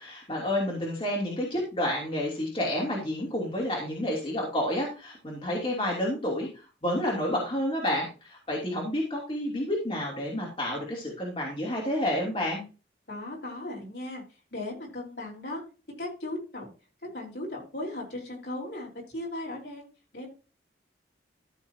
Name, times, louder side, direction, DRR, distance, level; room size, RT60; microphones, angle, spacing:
voice 1, 0.0-12.6, left 1 dB, 30° left, -3 dB, 2.9 m, -30 dB
voice 2, 13.1-14.2 14.5-15.6 16.0-16.7 17.1-19.9 20.1-20.3, left 1 dB, 60° left, -2 dB, 4.3 m, -37 dB
13.5 x 7.1 x 2.8 m, 0.33 s
head